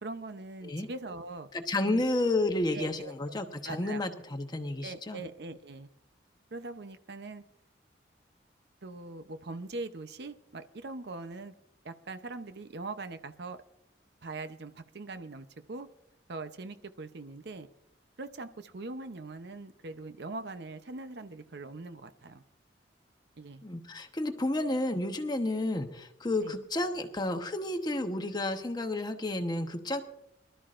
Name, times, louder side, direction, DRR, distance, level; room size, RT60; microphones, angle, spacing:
voice 1, 0.0-1.5 1.8-2.0 2.7-3.1 3.6-4.0 4.8-5.9 6.5-7.4 8.8-11.5 11.8-13.6 14.2-15.9 16.3-17.7 18.2-22.4 23.4-23.6 26.4-26.5, right 3 dB, 65° right, 10 dB, 0.8 m, -41 dB
voice 2, 1.5-5.2 23.6-30.0, left 2 dB, 25° left, 6 dB, 1.0 m, -31 dB
23.5 x 12.5 x 2.5 m, 0.81 s
head